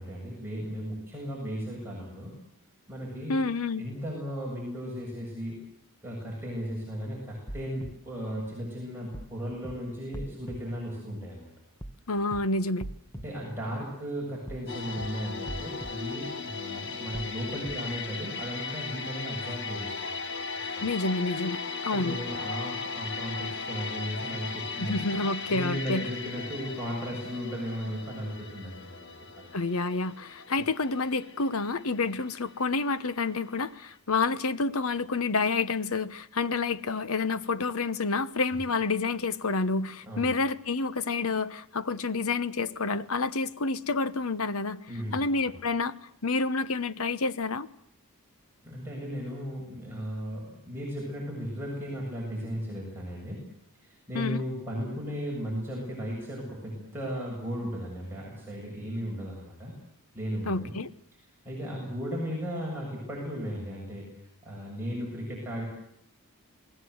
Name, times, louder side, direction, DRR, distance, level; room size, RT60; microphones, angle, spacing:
voice 1, 0.0-2.3 2.9-3.4 3.8-5.6 6.0-11.5 13.1-20.4 20.8-20.9 21.9-24.9 25.5-29.5 40.0-40.3 44.9-45.6 48.6-53.5 53.8-59.7 60.1-60.7 61.4-64.1 64.4-65.6, equal, 10° right, 7.2 m, -36 dB
voice 2, 3.3-3.8 12.1-12.9 20.8-22.2 24.8-26.0 29.5-44.8 45.1-45.9 46.2-47.7 54.1-54.4 60.5-60.9, left 3 dB, 70° left, 1.0 m, -29 dB
sound 1, 7.5-7.9 9.1-9.3 9.6-9.7 10.1-10.6 11.8-12.0 12.3-12.4 12.8-13.2 14.5-14.7 15.0-15.1 15.5-15.9 17.1-17.3 17.6-17.7, equal, 10° left, 1.3 m, -40 dB
sound 2, 14.7-33.5 33.8-34.0, left 4 dB, 55° left, 1.8 m, -37 dB
28.0 x 19.5 x 8.0 m
head